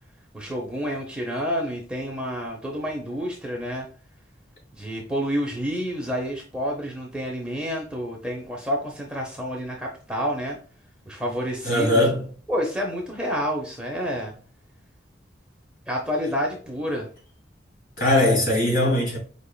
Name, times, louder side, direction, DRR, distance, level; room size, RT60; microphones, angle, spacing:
voice 1, 0.3-3.9 4.7-10.6 11.1-12.1 12.5-14.3 15.9-17.1, equal, 5° right, 0.7 m, -29 dB
voice 2, 11.6-12.3 18.0-19.2, left 1 dB, 50° left, 2.2 m, -20 dB
4.9 x 3.5 x 2.2 m
head